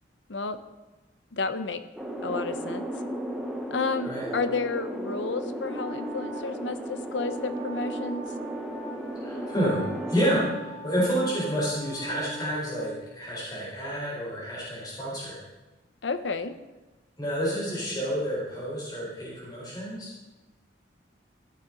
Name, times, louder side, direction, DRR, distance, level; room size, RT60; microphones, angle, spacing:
voice 1, 1.3-1.8 2.2-2.9 3.7-8.2 16.0-16.5, left 4 dB, 85° left, 10 dB, 0.8 m, -31 dB
sound 1, 2.0-10.5, right 1 dB, 5° right, 1.1 m, -35 dB
Wind instrument woodwind instrument, 5.6-13.1, right 1 dB, 75° right, 2.2 m, -41 dB
voice 2, 9.2-15.4 17.2-20.1, equal, 20° left, -7 dB, 4.4 m, -29 dB
14.0 x 8.5 x 3.9 m, 1.1 s
head